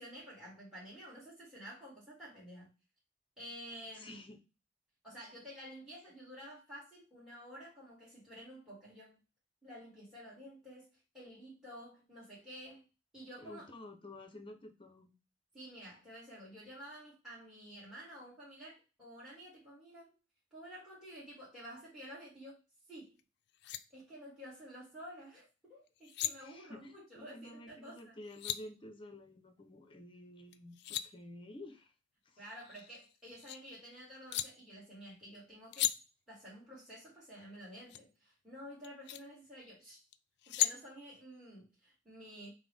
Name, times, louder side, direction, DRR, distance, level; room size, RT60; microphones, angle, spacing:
voice 1, 0.0-2.7 3.4-4.2 5.0-9.2 9.6-12.9 13.1-13.6 15.5-20.1 20.5-22.6 22.9-23.2 23.9-28.2 32.4-35.9 36.3-40.0 40.5-42.5, equal, 5° right, -7 dB, 1.5 m, -51 dB
voice 2, 3.9-4.4 13.4-15.1 26.4-31.9 32.3-32.4, left 1 dB, 30° left, 7 dB, 0.7 m, -51 dB
sound 1, 23.2-23.3 23.5-23.8 25.9-26.3 28.0-28.6 30.5-31.1 32.5-33.6 34.3-34.5 35.7-35.9 37.9-38.0 38.8-39.2 40.1-40.8, left 13 dB, 60° left, 0.3 m, -36 dB
5.6 x 2.1 x 3.4 m, 0.29 s
head